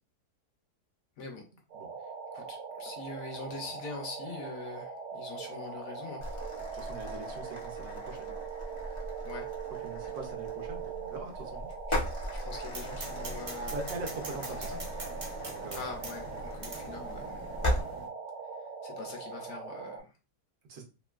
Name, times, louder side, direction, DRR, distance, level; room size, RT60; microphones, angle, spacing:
sound 1, 1.7-20.0, right 6 dB, 90° right, 1.3 m, -41 dB
voice 1, 2.3-6.2 9.2-9.5 12.3-13.8 14.7-14.8 15.7-17.5 18.8-20.2, left 4 dB, 65° left, 2 dB, 1.0 m, -43 dB
sound 2, 6.2-17.8, left 1 dB, 50° left, 0.3 m, -38 dB
voice 2, 6.7-8.3 9.8-11.7 13.7-14.7 15.4-15.9 20.7-20.8, right 3 dB, 70° right, 3 dB, 1.1 m, -42 dB
sound 3, 12.7-18.1, right 2 dB, 45° right, 0.6 m, -44 dB
3.0 x 2.6 x 2.3 m, 0.31 s
omnidirectional pair, 1.7 m